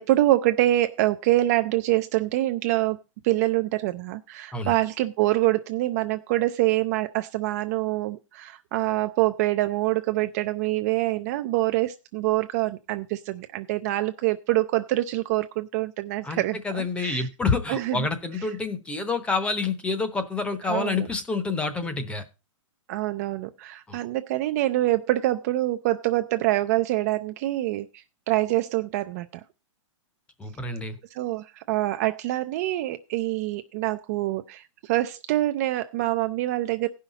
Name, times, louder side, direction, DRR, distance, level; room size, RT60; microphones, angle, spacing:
voice 1, 0.0-3.0 3.2-17.3 17.7-18.1 20.6-21.1 22.9-29.4 31.1-36.9, right 16 dB, 30° right, 9 dB, 0.4 m, -25 dB
voice 2, 16.2-22.2 23.9-24.0 30.4-31.0, left 4 dB, 5° left, 10 dB, 0.8 m, -28 dB
16.5 x 5.7 x 3.9 m, 0.28 s
hypercardioid pair, 160°, 16 cm